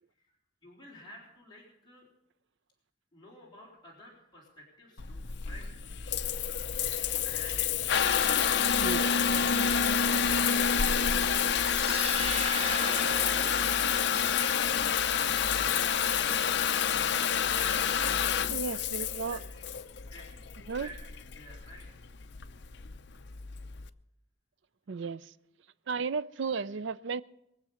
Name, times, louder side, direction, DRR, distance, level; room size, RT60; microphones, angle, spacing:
voice 1, 0.6-2.1 3.1-5.8 18.7-19.8 20.1-21.9 22.1-22.3, equal, 25° left, 4.0 m, -52 dB
Water tap faucet / Bathtub (filling or washing) / Trickle dribble, 5.0-23.9, left 7 dB, 65° left, 0.6 m, -28 dB
sound 1, 11.4-14.5, right 5 dB, 30° right, 1.0 m, -39 dB
voice 2, 18.5-19.4 20.7-20.9 24.9-25.3 25.9-27.2, right 5 dB, 70° right, 0.5 m, -34 dB
22.5 x 7.7 x 7.0 m
head